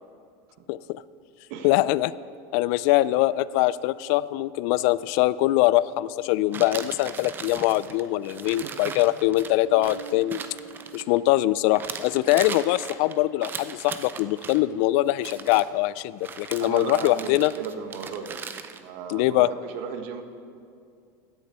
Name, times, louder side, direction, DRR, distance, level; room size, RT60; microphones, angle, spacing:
voice 1, 0.7-1.0 1.6-2.1 2.5-10.4 10.9-17.5 19.1-19.5, left 16 dB, 60° left, 19 dB, 0.3 m, -23 dB
sound 1, 6.5-11.4 11.7-14.6 15.1-15.7 16.2-18.8, right 6 dB, 20° right, 0.5 m, -38 dB
voice 2, 8.4-9.0 16.6-18.4 18.7-20.2, right 6 dB, 65° right, 7 dB, 1.3 m, -36 dB
Bass guitar, 9.7-13.2, right 8 dB, 80° right, 1.3 m, -46 dB
16.0 x 10.0 x 4.3 m, 2.4 s
supercardioid pair, 150°, 9 cm